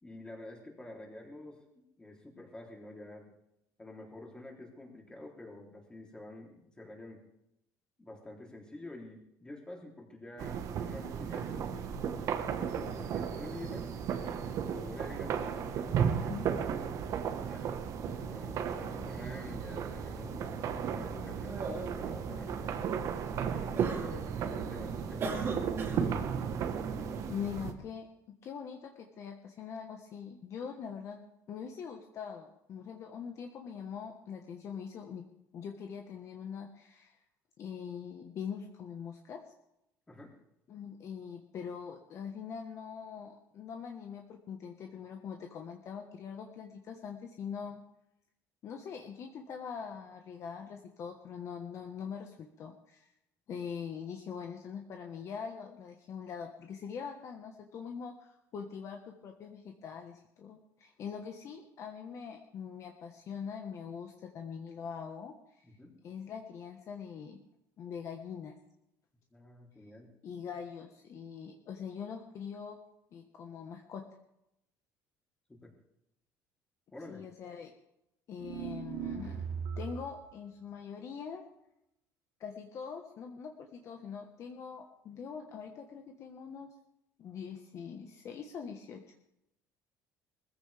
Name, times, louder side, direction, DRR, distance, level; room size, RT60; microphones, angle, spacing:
voice 1, 0.0-3.3 3.8-7.2 8.0-11.9 12.4-13.9 14.3-16.3 16.6-17.0 17.3-17.7 18.2-20.3 20.9-22.6 23.4-26.5 27.0-27.1 40.1-40.3 65.6-65.9 69.3-70.1 75.5-75.7 76.9-77.2, left 2 dB, 10° left, -1 dB, 3.3 m, -48 dB
sound 1, 10.4-27.7, right 8 dB, 55° right, 1.3 m, -35 dB
sound 2, 11.1-27.3, right 4 dB, 40° right, 3.0 m, -41 dB
voice 2, 16.1-16.4 27.3-28.1 28.4-31.2 31.5-35.2 35.5-37.2 37.6-39.4 40.7-47.8 48.6-53.1 53.5-65.7 66.0-67.4 67.8-68.5 70.2-72.8 73.1-74.0 77.1-77.7 78.3-81.4 82.4-86.7 87.2-89.2, left 7 dB, 45° left, 3 dB, 1.3 m, -43 dB
sound 3, 78.4-80.2, right 7 dB, 75° right, 2.3 m, -38 dB
20.5 x 15.0 x 3.5 m, 0.84 s
cardioid pair, 140°, 7 cm